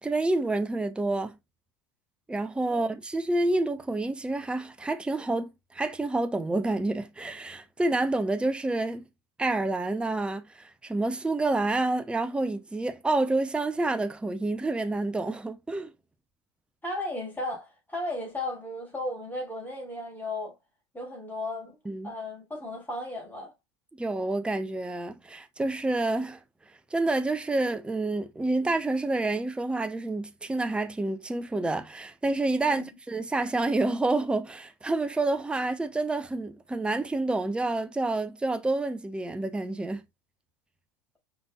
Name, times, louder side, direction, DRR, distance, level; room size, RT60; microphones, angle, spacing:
voice 1, 0.0-1.4 2.3-9.0 9.4-15.9 21.9-22.1 24.0-26.4 26.9-40.1, right 2 dB, 5° right, 0.6 m, -28 dB
voice 2, 16.8-20.5 20.9-21.8 22.0-23.5 32.6-32.9, left 1 dB, 10° left, 3.0 m, -35 dB
5.1 x 3.9 x 2.3 m
hypercardioid pair, 85°, 14 cm